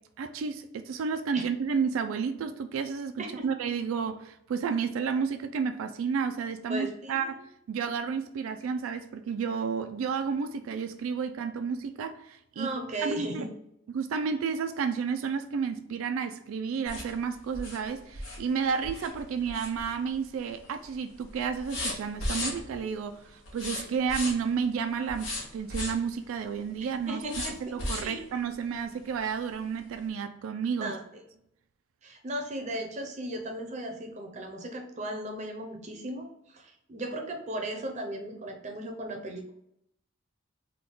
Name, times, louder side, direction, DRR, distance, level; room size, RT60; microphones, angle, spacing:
voice 1, 0.2-12.7 13.0-13.4 13.9-30.9, right 6 dB, 75° right, 0.3 m, -31 dB
voice 2, 6.7-7.4 12.6-13.5 27.1-27.7 28.0-28.2 30.8-31.0 32.0-39.5, right 1 dB, 35° right, 0.6 m, -36 dB
sound 1, 16.9-20.2 20.6-20.9 21.2-22.9 23.4-24.6 25.1-26.1 27.3-28.2 28.7-28.8 29.2-29.3, left 1 dB, 70° left, 1.2 m, -36 dB
3.5 x 2.2 x 3.8 m
head